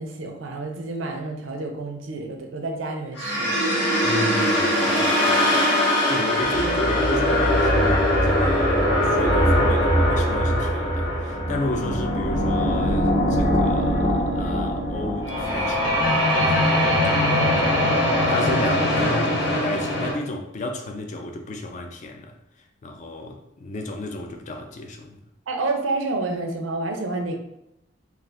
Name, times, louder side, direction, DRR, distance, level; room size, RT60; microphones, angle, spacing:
voice 1, 0.0-3.6 25.5-27.4, right 2 dB, 85° right, 0.5 m, -29 dB
sound 1, 3.2-20.1, equal, 65° left, 1.0 m, -21 dB
voice 2, 4.0-15.9 16.4-17.7 18.3-22.4 22.8-25.2, left 1 dB, 40° left, 0.3 m, -33 dB
2.4 x 2.3 x 3.3 m
head